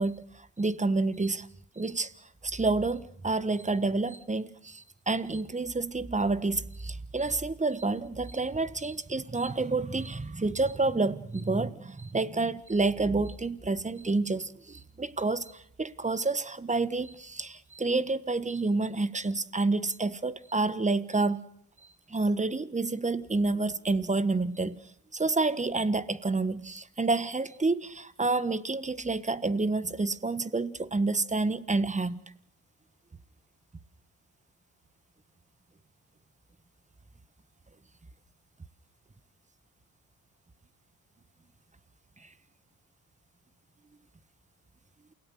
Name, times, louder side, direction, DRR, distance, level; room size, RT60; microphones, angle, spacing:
voice 1, 0.0-1.5 1.8-2.1 2.4-21.4 22.1-24.8 25.1-32.2, right 3 dB, 20° right, 1.4 m, -29 dB
28.5 x 17.5 x 6.5 m
supercardioid pair, 70°, 36 cm